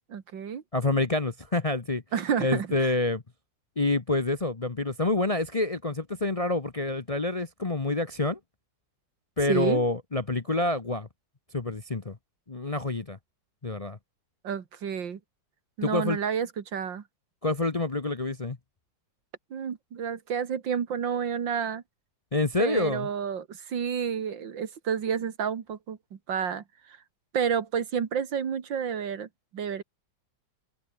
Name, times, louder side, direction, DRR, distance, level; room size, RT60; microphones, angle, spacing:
voice 1, 0.1-0.6 2.1-2.9 9.5-9.8 14.4-15.2 15.8-17.0 19.5-21.8 22.6-27.0 27.3-29.8, right 7 dB, 85° right, 2.5 m, -30 dB
voice 2, 0.7-2.0 2.4-3.2 3.8-8.4 9.4-11.1 11.5-12.2 12.5-13.2 13.6-14.0 15.8-16.2 17.4-18.6 22.3-23.1, left 2 dB, 30° left, 0.7 m, -27 dB
omnidirectional pair, 2.0 m